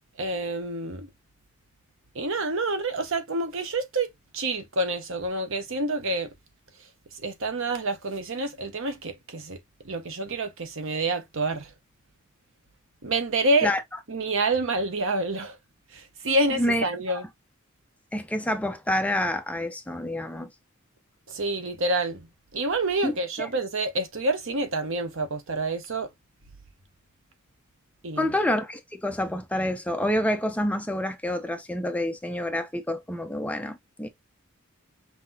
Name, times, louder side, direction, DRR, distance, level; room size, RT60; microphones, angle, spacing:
voice 1, 0.2-1.1 2.1-6.3 7.2-9.6 9.8-11.7 13.0-13.7 14.1-15.6 15.9-17.2 21.3-22.3 22.5-26.1 28.0-28.3, right 2 dB, 65° right, 1.0 m, -28 dB
voice 2, 16.5-17.2 18.1-20.5 23.0-23.5 28.2-34.1, left 1 dB, 5° left, 0.6 m, -28 dB
5.7 x 2.8 x 2.7 m
head